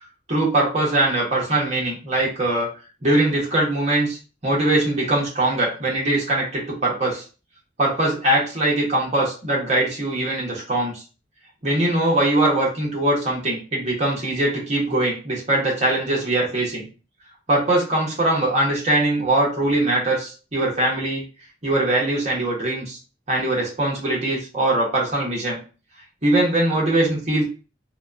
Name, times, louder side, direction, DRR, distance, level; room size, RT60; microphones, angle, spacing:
voice 1, 0.3-2.7 3.0-4.2 4.4-7.2 7.8-11.0 11.6-16.9 17.5-21.2 21.6-23.0 23.3-25.6 26.2-27.4, right 1 dB, 40° right, -4 dB, 1.0 m, -21 dB
2.8 x 2.2 x 2.4 m, 0.35 s
head